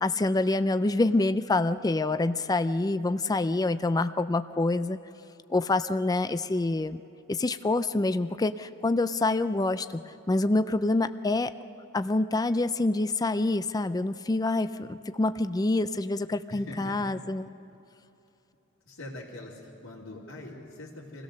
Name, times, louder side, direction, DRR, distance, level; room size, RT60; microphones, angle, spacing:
voice 1, 0.0-5.0 5.5-7.0 7.3-10.0 10.3-11.5 11.9-17.5, left 2 dB, 20° left, 12 dB, 0.4 m, -26 dB
voice 2, 16.5-17.1 18.8-21.2, left 1 dB, 85° left, -8 dB, 2.9 m, -43 dB
26.5 x 17.0 x 6.5 m, 2.8 s
head